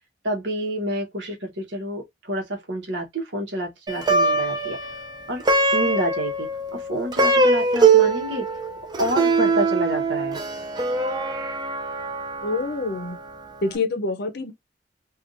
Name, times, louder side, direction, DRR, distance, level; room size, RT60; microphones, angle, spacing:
voice 1, 0.2-4.8 5.3-5.4 5.7-8.5 9.0-10.4, right 1 dB, 70° right, 1.3 m, -28 dB
Plucked string instrument, 3.9-13.3, right 3 dB, 25° right, 0.6 m, -22 dB
voice 2, 12.4-13.2 13.6-14.5, left 3 dB, 60° left, 0.7 m, -26 dB
3.5 x 2.5 x 2.6 m
head